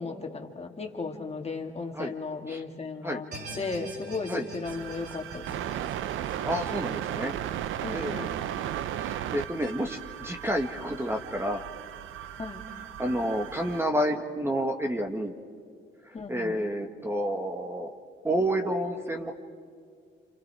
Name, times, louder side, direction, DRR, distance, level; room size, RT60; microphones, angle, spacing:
voice 1, 0.0-3.3 3.5-5.6 7.8-8.3 12.4-12.7 16.1-16.6, left 4 dB, 30° left, 3 dB, 2.3 m, -35 dB
sound 1, 3.3-8.5 8.9-9.0 9.6-9.7, right 2 dB, 50° right, 6.7 m, -45 dB
sound 2, 4.6-13.8, right 11 dB, 80° right, 0.7 m, -35 dB
voice 2, 6.4-7.3 7.9-8.2 9.0-11.6 13.0-15.3 16.3-17.9 18.2-19.3, equal, 10° right, 3 dB, 1.6 m, -29 dB
28.5 x 28.0 x 4.8 m, 2.1 s
cardioid pair, 90°, 20 cm